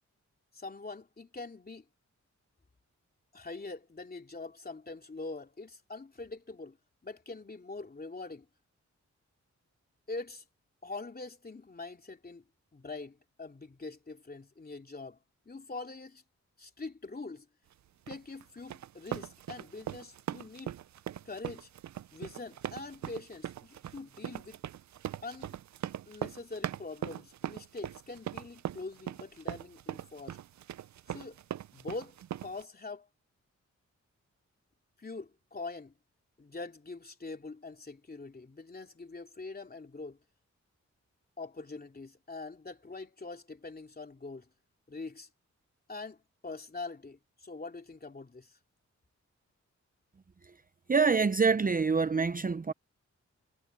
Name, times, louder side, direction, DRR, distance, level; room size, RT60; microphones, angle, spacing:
voice 1, 0.5-1.8 3.3-6.8 7.0-8.5 10.1-10.4 10.8-12.4 12.7-15.2 15.4-16.2 16.6-17.5 18.1-20.8 21.2-21.7 22.1-24.6 25.2-25.6 26.1-30.4 31.1-31.4 31.7-32.2 32.4-33.1 35.0-35.9 36.4-40.2 41.4-44.5 44.9-45.3 45.9-48.6, left 3 dB, 30° left, 3.1 m, -43 dB
sound 1, 18.1-32.6, right 11 dB, 70° right, 0.5 m, -40 dB
voice 2, 50.9-52.7, right 5 dB, 30° right, 0.6 m, -26 dB
wide cardioid pair, 110°, 29 cm